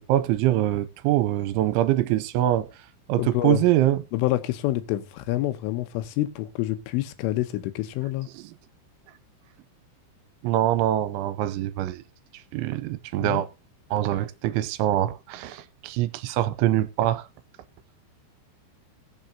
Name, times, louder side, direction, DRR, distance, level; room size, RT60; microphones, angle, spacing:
voice 1, 0.1-2.7 3.1-4.0 8.3-8.4 10.4-12.0 12.5-13.5 13.9-17.2, right 13 dB, 80° right, 3.0 m, -24 dB
voice 2, 3.2-3.7 4.1-8.3 13.2-13.4, left 16 dB, 90° left, 3.6 m, -27 dB
22.0 x 7.5 x 2.8 m
omnidirectional pair, 5.7 m